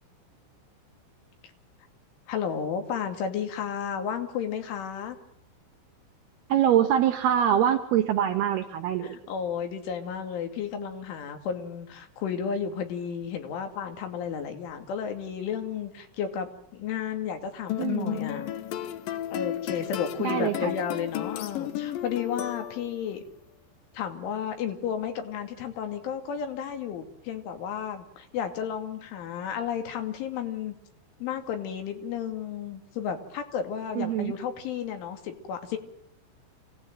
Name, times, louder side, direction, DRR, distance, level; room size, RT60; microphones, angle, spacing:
voice 1, 2.3-5.2 9.0-18.5 19.3-23.2 23.9-30.7 31.2-35.8, left 7 dB, 70° left, 6 dB, 4.9 m, -33 dB
voice 2, 6.5-9.2 17.8-18.2 20.2-20.7 34.0-34.3, right 10 dB, 70° right, 8 dB, 2.6 m, -24 dB
sound 1, 17.7-23.1, left 12 dB, 90° left, 2.0 m, -33 dB
27.5 x 18.0 x 9.2 m, 0.74 s
omnidirectional pair, 5.8 m